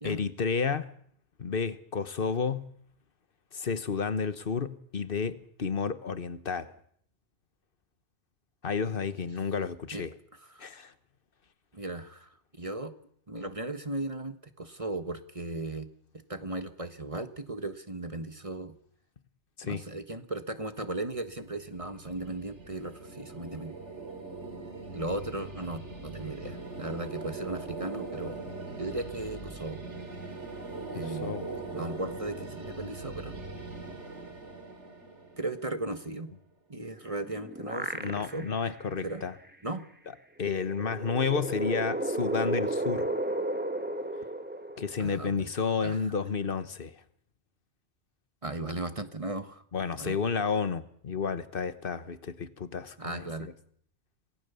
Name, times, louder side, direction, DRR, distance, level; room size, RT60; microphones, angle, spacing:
voice 1, 0.0-0.9 1.4-2.7 3.5-6.7 8.6-10.1 10.6-10.9 19.6-19.8 31.2-31.6 38.0-39.3 40.4-43.1 44.8-46.9 49.7-53.5, left 5 dB, 50° left, 1.4 m, -31 dB
voice 2, 10.4-10.7 11.7-12.9 13.3-15.9 16.3-18.7 19.6-23.8 24.9-28.4 28.8-29.8 30.9-31.4 31.7-33.4 35.4-36.3 36.7-38.5 39.0-39.2 39.6-39.8 45.0-45.5 45.8-46.0 48.4-49.6 50.0-50.2 53.0-53.5, right 2 dB, 30° right, 1.5 m, -37 dB
sound 1, 21.0-36.1, right 3 dB, 80° right, 3.4 m, -41 dB
sound 2, 37.0-38.6 39.1-39.2 40.5-45.3, right 1 dB, 10° right, 1.5 m, -33 dB
27.0 x 19.0 x 7.0 m
omnidirectional pair, 1.2 m